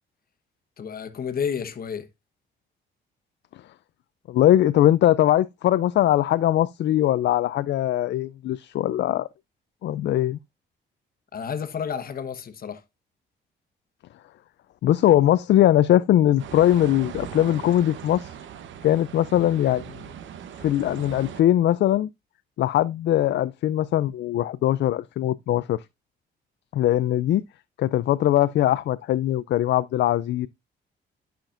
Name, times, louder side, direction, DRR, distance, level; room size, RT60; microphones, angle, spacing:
voice 1, 0.8-2.1 11.3-12.8, left 7 dB, 50° left, 1.2 m, -31 dB
voice 2, 4.3-9.3 9.8-10.4 14.8-18.3 18.8-20.0 20.6-22.1 22.6-25.8 26.7-27.4 27.8-30.5, left 12 dB, 65° left, 0.4 m, -21 dB
sound 1, 16.4-21.4, right 8 dB, 75° right, 1.0 m, -39 dB
11.5 x 5.9 x 2.5 m
cardioid pair, 90°, 20 cm